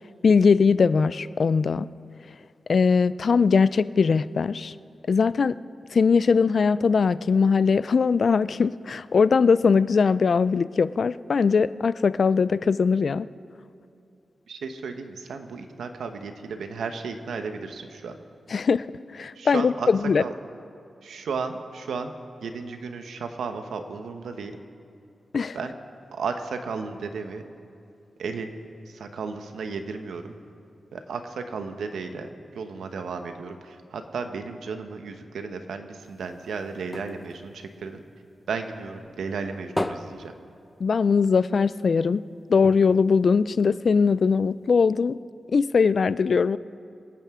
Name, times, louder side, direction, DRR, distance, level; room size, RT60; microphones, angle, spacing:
voice 1, 0.2-1.9 2.7-4.7 5.1-5.6 5.9-13.3 18.5-18.9 19.1-20.2 25.3-25.6 40.8-42.2 42.5-45.2 45.5-46.6, left 5 dB, 65° left, 17 dB, 0.4 m, -21 dB
voice 2, 14.5-18.2 19.4-19.9 20.2-20.3 21.0-22.1 22.4-24.5 25.5-25.7 26.1-27.4 28.2-28.5 28.9-30.3 30.9-38.0 38.5-40.3, right 5 dB, 90° right, 7 dB, 1.0 m, -34 dB
sound 1, 36.0-38.7 39.0-41.3 41.6-41.7 42.0-42.1 42.6-44.1 44.7-44.8, left 1 dB, 15° left, 0.7 m, -36 dB
26.0 x 9.1 x 3.7 m, 2.6 s
cardioid pair, 60°, 0 cm